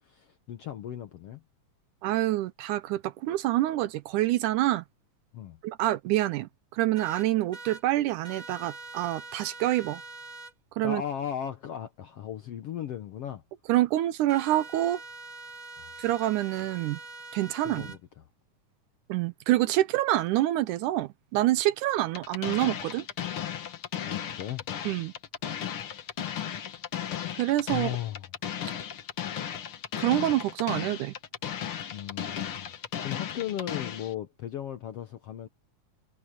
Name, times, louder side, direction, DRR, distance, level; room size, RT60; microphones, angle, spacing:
voice 1, 0.0-1.4 5.3-5.6 10.8-13.4 15.8-15.9 17.6-18.2 24.1-24.6 27.7-28.3 31.9-32.7 33.0-35.5, left 10 dB, 70° left, 1.5 m, -36 dB
voice 2, 2.0-4.8 5.6-10.0 10.8-11.0 13.7-15.0 16.0-17.0 17.3-18.0 19.1-23.1 24.9-25.1 27.3-27.9 30.0-31.1, right 15 dB, 80° right, 2.0 m, -27 dB
sound 1, 6.9-7.8 8.2-10.5 14.3-18.0, right 3 dB, 30° right, 2.0 m, -44 dB
sound 2, 22.1-34.1, left 9 dB, 55° left, 1.7 m, -35 dB
omnidirectional pair, 3.9 m